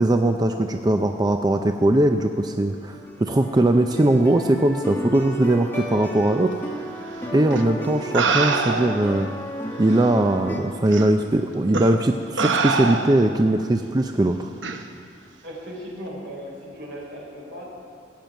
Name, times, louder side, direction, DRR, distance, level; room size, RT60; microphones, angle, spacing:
voice 1, 0.0-6.5 7.3-9.3 9.8-14.5, right 1 dB, 20° right, 6 dB, 0.4 m, -20 dB
sound 1, 2.7-10.6, right 1 dB, 10° left, 1.5 m, -33 dB
sound 2, 7.5-7.6 8.1-9.1 10.0-10.1 10.9-11.1 11.7-12.0 12.4-13.3 14.6-14.8, right 4 dB, 90° right, 0.9 m, -24 dB
voice 2, 15.4-17.6, equal, 65° right, -3 dB, 4.2 m, -37 dB
15.5 x 7.4 x 9.3 m, 2.3 s
head